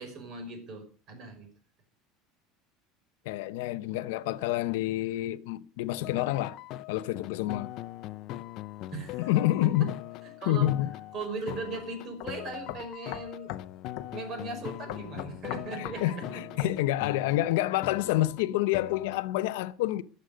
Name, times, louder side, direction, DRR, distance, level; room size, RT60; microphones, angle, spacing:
voice 1, 0.0-1.5 8.9-9.3 10.4-10.7 11.1-13.5 14.1-16.7, right 3 dB, 35° right, 5.3 m, -38 dB
voice 2, 3.2-6.6 6.9-7.7 9.2-9.9 10.5-10.9 15.8-20.0, left 15 dB, 85° left, 0.9 m, -28 dB
sound 1, 6.0-19.2, left 15 dB, 40° left, 0.6 m, -41 dB
sound 2, 11.5-11.6 12.2-12.3 12.7-13.7 14.0-14.1 14.9-16.0 16.6-16.8, left 15 dB, 60° left, 1.0 m, -39 dB
23.0 x 8.2 x 5.1 m
cardioid pair, 175°, 0 cm